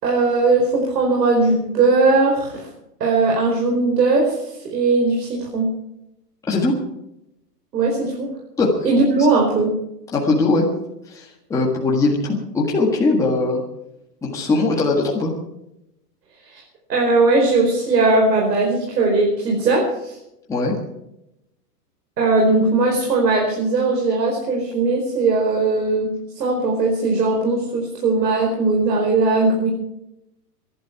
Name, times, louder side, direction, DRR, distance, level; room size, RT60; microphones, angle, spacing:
voice 1, 0.0-2.7 3.0-4.4 4.7-5.7 7.7-8.3 8.8-9.7 16.5-16.6 16.9-20.1 22.2-29.7, right 3 dB, 85° right, -1 dB, 4.8 m, -19 dB
voice 2, 10.1-10.7 11.1-13.6 14.2-15.4 20.5-20.7, left 3 dB, 5° left, -3 dB, 1.6 m, -20 dB
23.5 x 11.5 x 4.8 m, 0.86 s
supercardioid pair, 170°, 48 cm